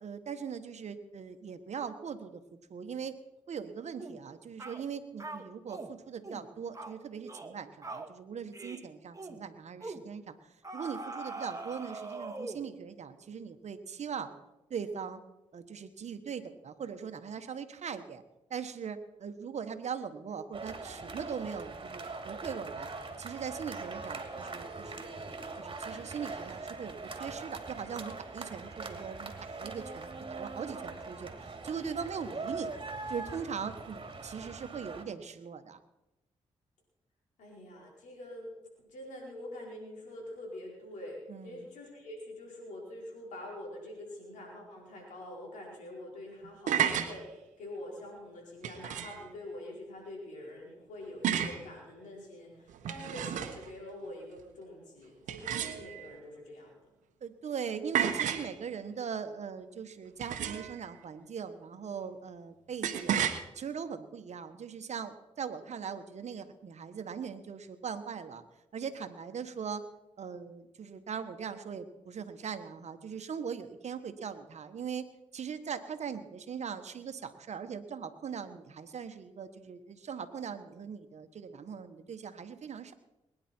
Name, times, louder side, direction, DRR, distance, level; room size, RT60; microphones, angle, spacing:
voice 1, 0.0-2.4 2.7-3.2 3.5-10.3 10.7-14.3 14.7-15.2 15.5-18.2 18.5-22.9 23.2-32.7 33.1-35.8 41.3-41.7 57.2-63.2 63.5-68.4 68.7-69.8 70.2-75.1 75.3-82.9, right 6 dB, 65° right, 9 dB, 1.4 m, -40 dB
sound 1, 4.0-4.2 4.6-4.8 5.2-5.9 6.2-6.5 6.7-7.0 7.3-7.6 7.8-8.1 8.5-8.8 9.1-9.4 9.8-10.0 10.6-12.7, right 3 dB, 25° right, 1.9 m, -42 dB
sound 2, 20.5-35.0, right 3 dB, 40° right, 2.6 m, -42 dB
voice 2, 37.4-38.5 38.9-56.8, left 1 dB, 85° left, -1 dB, 4.8 m, -45 dB
sound 3, 46.4-47.1 48.6-49.2 51.2-51.6 52.7-53.7 55.3-56.1 57.9-58.5 60.2-60.8 62.8-63.4, right 9 dB, 80° right, 1.1 m, -31 dB
21.5 x 10.0 x 4.5 m, 0.94 s
supercardioid pair, 45°, 13 cm